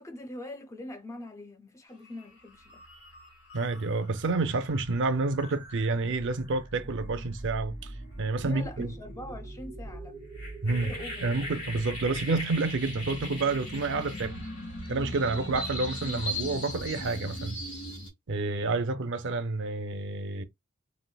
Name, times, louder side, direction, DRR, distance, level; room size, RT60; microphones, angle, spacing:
voice 1, 0.0-2.8 8.4-10.2 10.7-11.3, left 1 dB, 15° left, 0.4 m, -43 dB
sound 1, 2.0-2.3 2.6-18.1, equal, 90° left, 1.9 m, -39 dB
voice 2, 3.5-8.9 10.6-10.9 11.2-14.4 14.9-17.6 18.3-20.4, right 3 dB, 55° right, 0.5 m, -29 dB
3.3 x 2.9 x 2.2 m
head